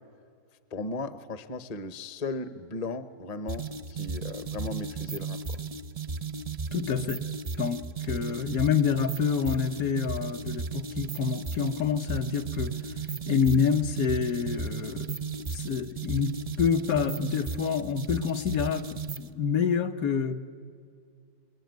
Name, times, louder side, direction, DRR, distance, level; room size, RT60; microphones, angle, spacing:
voice 1, 0.7-5.6, left 3 dB, 30° left, 12 dB, 0.8 m, -36 dB
sound 1, 3.5-19.3, right 5 dB, 35° right, 0.6 m, -35 dB
voice 2, 6.7-7.2 7.6-12.8 13.3-15.2 15.5-20.4, left 6 dB, 65° left, 8 dB, 1.4 m, -27 dB
28.5 x 22.5 x 9.2 m, 2.2 s
omnidirectional pair, 1.7 m